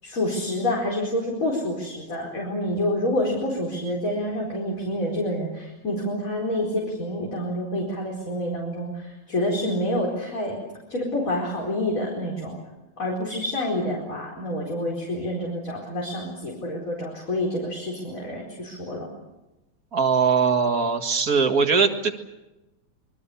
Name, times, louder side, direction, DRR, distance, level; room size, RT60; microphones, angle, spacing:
voice 1, 0.0-10.6 10.9-12.6 13.0-19.1, left 1 dB, 40° left, -2 dB, 5.0 m, -28 dB
voice 2, 19.9-22.1, right 5 dB, 45° right, 4 dB, 2.2 m, -21 dB
26.5 x 23.0 x 6.9 m, 1.0 s
omnidirectional pair, 2.2 m